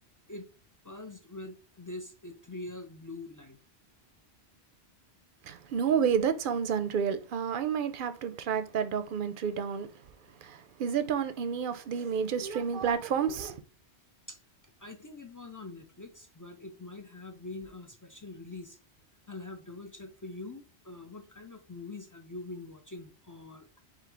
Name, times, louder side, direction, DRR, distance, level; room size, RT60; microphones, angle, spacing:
voice 1, 0.8-3.6 14.3-14.4 14.8-18.8 19.3-23.7, left 2 dB, 35° left, 0.3 m, -44 dB
voice 2, 5.5-9.9 10.4-13.6, right 7 dB, 60° right, 0.6 m, -30 dB
3.8 x 3.0 x 4.4 m
omnidirectional pair, 1.1 m